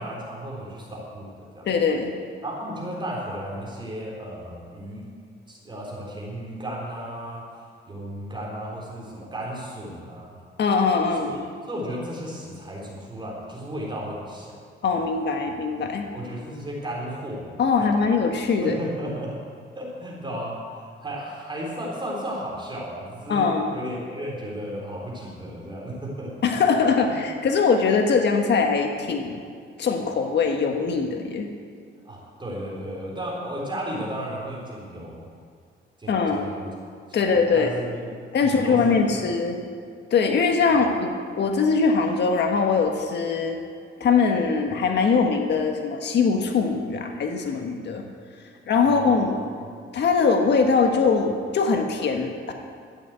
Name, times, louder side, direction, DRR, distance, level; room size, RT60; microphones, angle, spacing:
voice 1, 0.0-1.7 2.4-5.0 5.5-7.5 7.9-10.4 11.1-11.4 11.7-14.5 14.9-15.0 16.1-17.5 17.8-18.0 18.6-19.4 19.8-26.3 32.0-35.3 36.0-36.7 37.1-38.1 38.4-39.2 40.7-40.9 48.8-49.4, right 1 dB, 25° right, -4 dB, 3.8 m, -34 dB
voice 2, 1.7-2.1 10.6-11.4 14.8-16.0 17.6-18.8 23.3-23.7 26.4-29.4 29.8-31.5 36.1-36.5 37.1-37.7 38.3-39.6 40.1-41.1 41.4-43.6 44.0-48.0 48.7-49.3 49.9-52.5, left 5 dB, 60° left, 3 dB, 1.6 m, -22 dB
13.5 x 8.1 x 8.1 m, 2.2 s
cardioid pair, 90°, 20 cm